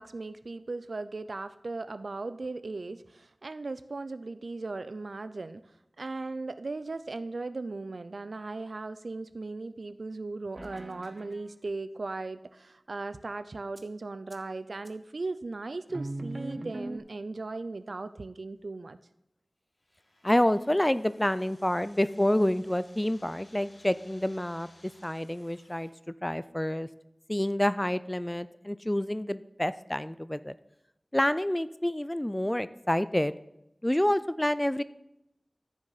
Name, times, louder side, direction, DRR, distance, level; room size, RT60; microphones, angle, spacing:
voice 1, 0.0-5.6 6.0-19.0, right 3 dB, 90° right, 13 dB, 0.4 m, -37 dB
sound 1, 10.5-11.5 13.8-13.9 14.3-14.4 14.8-14.9 15.9-17.0, right 2 dB, 45° right, 0.9 m, -39 dB
sound 2, 19.8-25.9, left 1 dB, 80° left, 1.8 m, -60 dB
voice 2, 20.2-25.9 26.2-26.9 27.3-30.6 31.1-33.3 33.8-34.8, left 1 dB, 15° left, 15 dB, 0.3 m, -28 dB
14.0 x 6.2 x 4.0 m, 0.84 s
wide cardioid pair, 65°, 0 cm